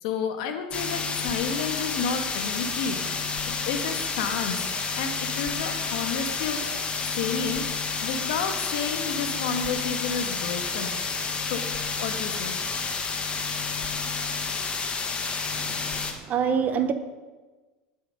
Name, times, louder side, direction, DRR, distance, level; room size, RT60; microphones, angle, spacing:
voice 1, 0.0-3.0 3.5-4.6 4.9-6.6 7.1-10.9 11.5-11.7 12.0-12.6, left 6 dB, 70° left, 5 dB, 2.0 m, -31 dB
sound 1, 0.7-16.1, left 5 dB, 30° left, 1.8 m, -30 dB
voice 2, 15.6-16.9, right 7 dB, 40° right, 9 dB, 1.4 m, -27 dB
19.0 x 7.8 x 5.3 m, 1.3 s
hypercardioid pair, 95°, 4 cm